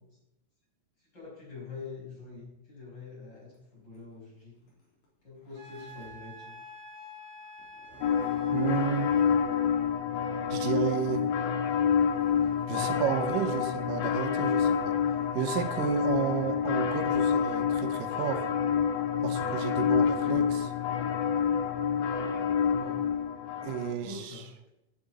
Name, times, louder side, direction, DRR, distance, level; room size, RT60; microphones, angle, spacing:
voice 1, 1.0-4.6 5.2-6.6 22.1-23.0 23.5-24.5, left 4 dB, 30° left, -4 dB, 6.1 m, -45 dB
Zipper (clothing), 3.5-6.2 7.6-8.9 11.4-11.5 11.8-12.8 13.3-13.4 14.1-16.1, left 2 dB, 60° left, 4.7 m, -55 dB
Wind instrument woodwind instrument, 5.5-9.4, right 1 dB, 45° right, 2.4 m, -48 dB
sound 1, 8.0-23.9, left 7 dB, 80° left, 2.8 m, -28 dB
voice 2, 8.5-9.1 10.5-11.3 12.7-14.9 15.3-18.5 19.2-20.7 23.6-24.4, right 9 dB, 80° right, 7 dB, 2.4 m, -32 dB
9.6 x 7.7 x 8.8 m, 0.88 s
omnidirectional pair, 3.9 m